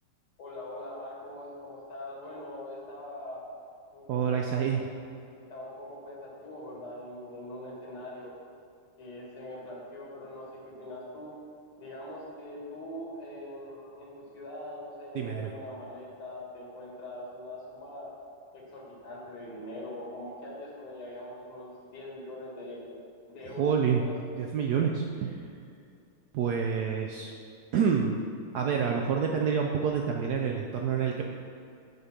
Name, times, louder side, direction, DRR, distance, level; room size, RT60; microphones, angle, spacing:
voice 1, 0.4-3.4 3.9-4.8 5.3-8.4 9.0-11.3 11.8-18.1 18.5-22.9 23.3-24.1, left 1 dB, 85° left, -4 dB, 2.8 m, -42 dB
voice 2, 4.1-4.8 15.1-15.5 23.5-24.0 24.4-25.5 26.3-27.3 27.7-28.2 28.5-31.2, right 7 dB, 85° right, 1 dB, 0.8 m, -28 dB
8.1 x 5.1 x 5.7 m, 2.4 s
omnidirectional pair, 2.3 m